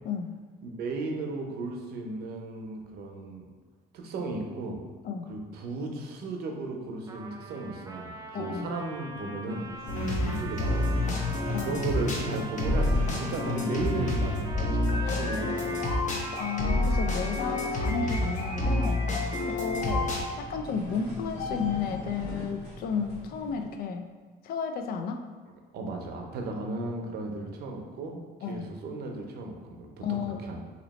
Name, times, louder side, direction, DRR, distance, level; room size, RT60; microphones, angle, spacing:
voice 1, 0.6-3.5 3.9-4.8 5.3-9.7 10.2-15.9 25.7-28.2 28.5-30.6, right 3 dB, 70° right, 1 dB, 0.7 m, -35 dB
Trumpet, 7.1-19.5, right 3 dB, 20° right, 0.4 m, -43 dB
voice 2, 8.3-8.7 11.5-11.8 16.4-19.0 19.4-20.1 20.4-24.1 24.4-25.3 28.4-28.7 30.0-30.4, left 6 dB, 65° left, 6 dB, 0.4 m, -32 dB
sound 1, 9.3-23.7, left 1 dB, 80° left, 1.3 m, -42 dB
sound 2, 9.9-20.2, left 2 dB, 45° left, 0.8 m, -28 dB
3.0 x 2.8 x 4.0 m, 1.4 s
cardioid pair, 110°, 17 cm